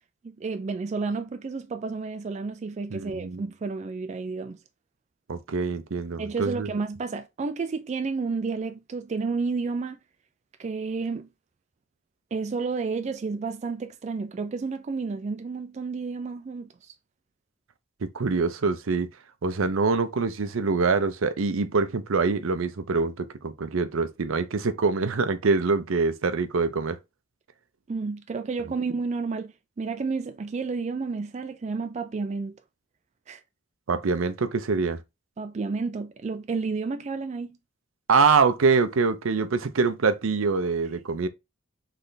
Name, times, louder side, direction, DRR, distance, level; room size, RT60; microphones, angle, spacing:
voice 1, 0.2-4.6 6.2-10.0 10.6-11.3 12.3-16.9 27.9-32.5 33.3-33.4 35.4-37.6, right 4 dB, 35° right, 0.3 m, -31 dB
voice 2, 2.9-3.4 5.3-6.7 18.1-19.1 19.4-27.0 33.9-35.0 38.1-41.3, right 4 dB, 80° right, 0.6 m, -24 dB
3.3 x 3.2 x 3.9 m
head